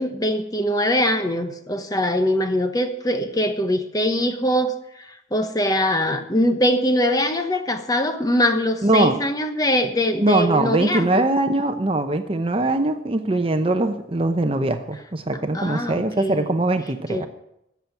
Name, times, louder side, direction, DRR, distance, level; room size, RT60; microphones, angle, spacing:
voice 1, 0.0-11.3 15.5-16.5 17.1-17.3, left 1 dB, 20° left, 7 dB, 1.1 m, -22 dB
voice 2, 8.8-9.2 10.2-17.3, right 2 dB, 30° right, 8 dB, 0.8 m, -21 dB
14.5 x 7.1 x 9.0 m, 0.82 s
head